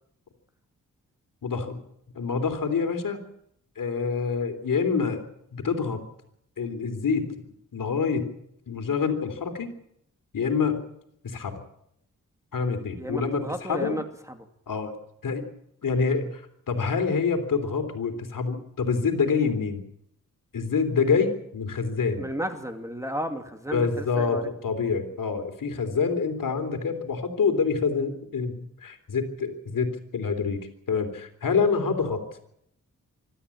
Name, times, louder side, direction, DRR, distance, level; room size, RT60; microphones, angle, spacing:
voice 1, 1.4-1.8 2.1-3.2 3.8-5.2 5.5-6.0 6.6-7.3 7.7-8.3 8.7-9.7 10.3-10.8 11.2-11.5 12.5-13.4 13.7-13.9 14.7-14.9 15.2-15.4 15.8-16.2 16.7-19.8 20.5-22.2 23.7-30.6 30.9-32.2, left 5 dB, 75° left, 6 dB, 3.4 m, -26 dB
voice 2, 13.0-14.4 22.2-24.5, equal, 10° right, 6 dB, 2.4 m, -33 dB
25.0 x 13.0 x 8.5 m, 0.75 s
wide cardioid pair, 95°, 33 cm